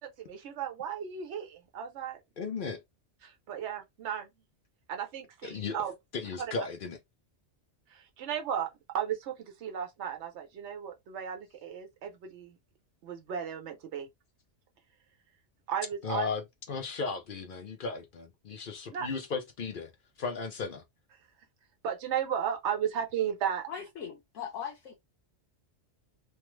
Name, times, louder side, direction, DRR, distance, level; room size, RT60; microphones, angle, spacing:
voice 1, 0.2-2.6 3.2-4.3 4.9-5.9 6.4-6.5 7.9-8.7 8.9-12.6 13.0-14.1 15.7-16.3 18.9-19.1 21.8-23.7, right 8 dB, 70° right, 1.0 m, -35 dB
voice 2, 2.4-2.8 5.4-5.8 6.1-7.0 16.0-19.9 20.2-20.8, left 4 dB, 55° left, 0.6 m, -35 dB
voice 3, 23.7-24.9, left 7 dB, 85° left, 1.1 m, -40 dB
3.2 x 2.0 x 3.0 m
omnidirectional pair, 1.2 m